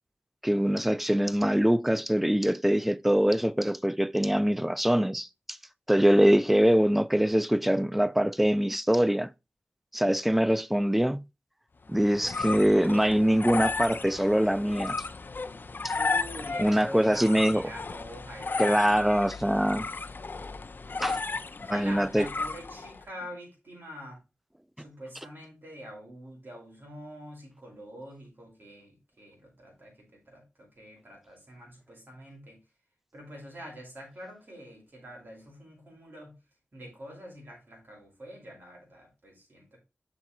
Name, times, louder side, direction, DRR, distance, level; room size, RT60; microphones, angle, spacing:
voice 1, 0.4-5.3 5.9-9.3 9.9-11.2 11.9-15.0 16.6-17.7 18.6-19.9 21.0-21.2 21.7-22.3, equal, 5° right, 0.4 m, -23 dB
sound 1, 11.9-23.0, left 4 dB, 55° left, 0.5 m, -34 dB
voice 2, 15.9-19.1 21.6-24.2 24.8-32.6 33.1-36.4 36.7-39.8, equal, 55° right, 4.8 m, -45 dB
6.8 x 6.1 x 4.2 m
wide cardioid pair, 75°, 4 cm